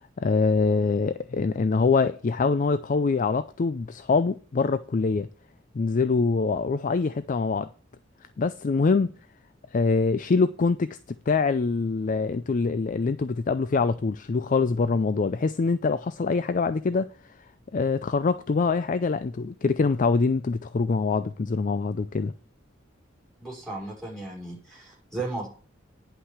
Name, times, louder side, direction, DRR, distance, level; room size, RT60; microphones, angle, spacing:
voice 1, 0.2-5.3 5.7-7.7 8.4-9.1 9.7-11.0 11.3-17.1 17.7-22.3, left 4 dB, 40° left, 0.4 m, -24 dB
voice 2, 23.4-25.5, right 2 dB, ahead, 5.3 m, -35 dB
9.9 x 5.7 x 7.2 m
head